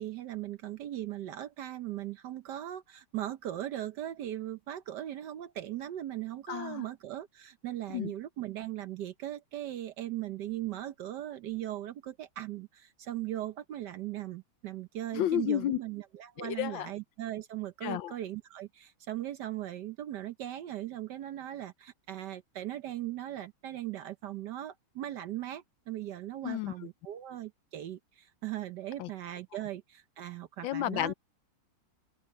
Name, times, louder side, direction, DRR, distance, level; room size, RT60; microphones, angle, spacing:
voice 1, 0.0-31.1, right 13 dB, 65° right, 1.2 m, -39 dB
voice 2, 6.5-6.9 7.9-8.1 15.1-15.8 16.4-16.9 17.8-18.1 26.4-26.7 29.0-29.1 30.6-31.1, left 13 dB, 75° left, 1.3 m, -31 dB
open air
omnidirectional pair, 2.3 m